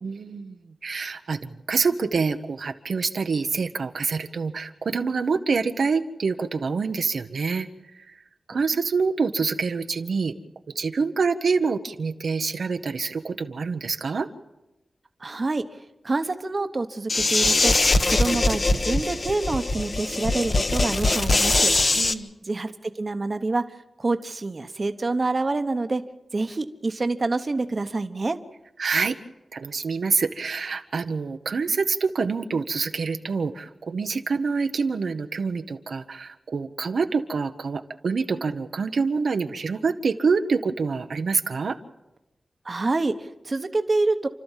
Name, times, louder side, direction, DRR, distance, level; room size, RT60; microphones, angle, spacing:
voice 1, 0.0-8.2 8.5-10.3 10.7-14.3 22.0-22.3 28.8-29.2 29.5-41.8, right 4 dB, 80° right, 7 dB, 1.0 m, -26 dB
voice 2, 15.2-15.6 16.0-17.7 18.1-21.7 22.5-26.0 26.3-28.4 42.6-44.3, right 3 dB, 40° right, 8 dB, 1.0 m, -27 dB
sound 1, 17.1-22.1, left 2 dB, 40° left, 1.1 m, -22 dB
29.5 x 13.0 x 7.4 m, 0.97 s
wide cardioid pair, 130°, 0 cm